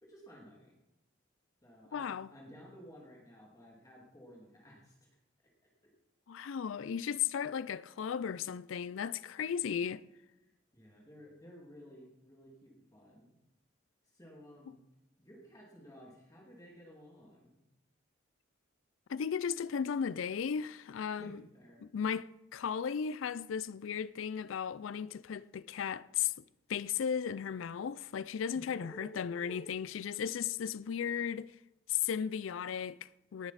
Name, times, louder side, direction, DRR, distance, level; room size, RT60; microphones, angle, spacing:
voice 1, 0.0-0.8 1.6-5.1 10.4-13.3 14.1-14.8 15.2-17.6 21.2-21.8 28.5-29.7, equal, 15° left, 2.4 m, -54 dB
voice 2, 1.9-2.3 6.3-10.0 19.1-21.4 21.8-26.3 26.7-31.6 31.9-33.5, left 7 dB, 80° left, 0.4 m, -35 dB
18.0 x 10.5 x 4.1 m
head